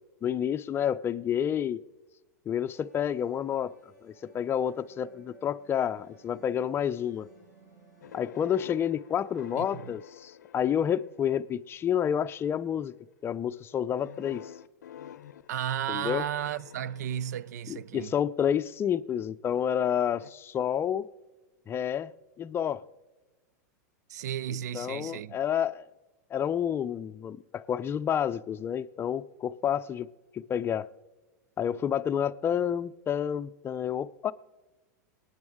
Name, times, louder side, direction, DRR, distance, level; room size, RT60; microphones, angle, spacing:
voice 1, 0.2-1.8 2.5-3.7 4.0-7.3 8.1-12.9 13.2-14.4 15.9-16.2 17.7-21.1 21.7-22.1 22.4-22.8 24.7-25.9 26.3-30.1 30.3-30.9 31.6-34.3, left 9 dB, 25° left, 0.5 m, -29 dB
sound 1, 2.7-9.7, right 4 dB, 90° right, 5.9 m, -58 dB
sound 2, 8.0-11.4 12.1-12.6 14.0-18.1 20.2-20.3, left 10 dB, 80° left, 0.6 m, -49 dB
voice 2, 9.6-9.9 15.5-18.1 24.1-25.4, right 10 dB, 75° right, 0.4 m, -34 dB
26.5 x 9.5 x 3.6 m
hypercardioid pair, 100°, 9 cm